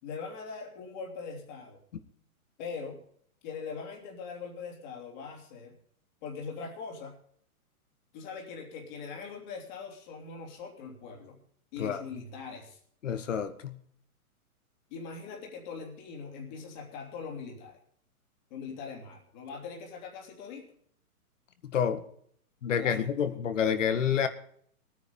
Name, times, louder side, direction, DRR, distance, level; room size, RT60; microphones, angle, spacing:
voice 1, 0.0-1.8 2.6-3.0 3.4-5.7 6.2-7.1 8.1-11.4 11.7-12.8 14.9-17.8 18.5-20.7 22.8-23.0, left 5 dB, 30° left, 1 dB, 3.1 m, -41 dB
voice 2, 13.0-13.8 21.6-22.0 22.6-24.3, left 8 dB, 55° left, 11 dB, 1.6 m, -28 dB
19.5 x 9.6 x 5.3 m, 0.63 s
hypercardioid pair, 165°, 44 cm